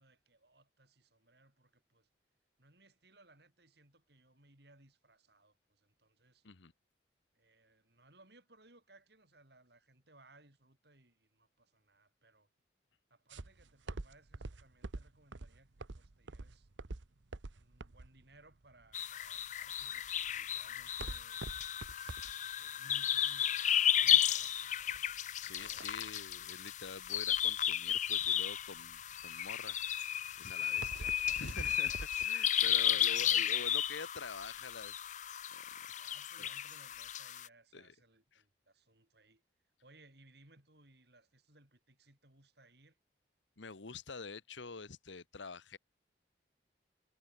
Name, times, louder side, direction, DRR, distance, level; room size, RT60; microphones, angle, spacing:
voice 1, 0.0-2.1 2.6-6.4 7.3-12.5 13.1-16.7 17.5-21.6 22.6-25.0 30.6-31.6 32.5-33.7 36.0-39.4 39.8-43.0, right 2 dB, 60° right, 5.9 m, -64 dB
sound 1, 13.3-32.3, right 2 dB, 80° right, 1.0 m, -47 dB
sound 2, 18.9-37.5, left 10 dB, 40° left, 0.5 m, -34 dB
voice 2, 25.4-31.1 31.4-35.0 35.5-35.9 36.4-36.5 37.7-37.9 38.3-38.4 43.6-45.8, left 4 dB, 80° left, 1.3 m, -47 dB
head